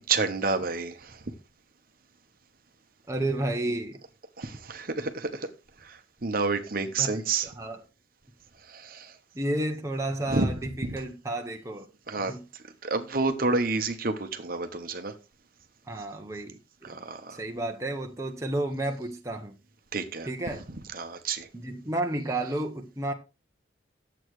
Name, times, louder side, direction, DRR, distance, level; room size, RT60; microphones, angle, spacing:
voice 1, 0.1-1.2 4.4-5.5 5.8-7.5 8.6-9.2 10.3-10.5 10.8-11.0 12.1-12.3 12.8-15.1 16.8-17.4 19.9-20.3 20.9-21.5, right 4 dB, 50° right, 0.9 m, -29 dB
voice 2, 3.1-4.0 7.0-7.8 9.3-11.9 12.1-12.4 15.9-17.0 17.3-19.6 20.2-20.6 21.5-23.1, right 1 dB, 15° right, 0.8 m, -32 dB
10.5 x 7.8 x 3.1 m
head